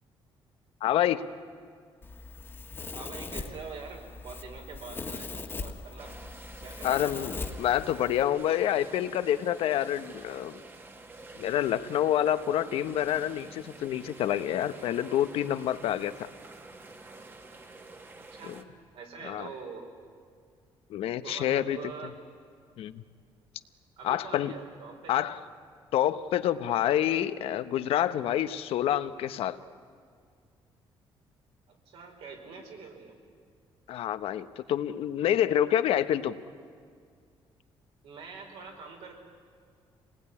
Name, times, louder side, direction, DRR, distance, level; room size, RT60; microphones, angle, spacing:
voice 1, 0.8-1.2 6.8-10.6 11.4-16.3 19.2-19.5 20.9-21.8 22.8-23.0 24.0-24.5 25.1-25.4 25.9-29.6 33.9-36.3, left 11 dB, 80° left, 12 dB, 1.0 m, -27 dB
Domestic sounds home sounds, 2.0-8.2, left 4 dB, 25° left, 1.5 m, -40 dB
voice 2, 2.9-6.1 6.6-7.1 18.3-18.6 18.9-19.9 21.2-22.2 24.0-25.4 31.7-33.2 38.0-39.1, right 5 dB, 75° right, 2 dB, 5.0 m, -44 dB
sound 1, 6.0-18.6, right 3 dB, 20° right, 1.4 m, -48 dB
27.0 x 19.5 x 9.7 m, 2.1 s
cardioid pair, 150°, 10 cm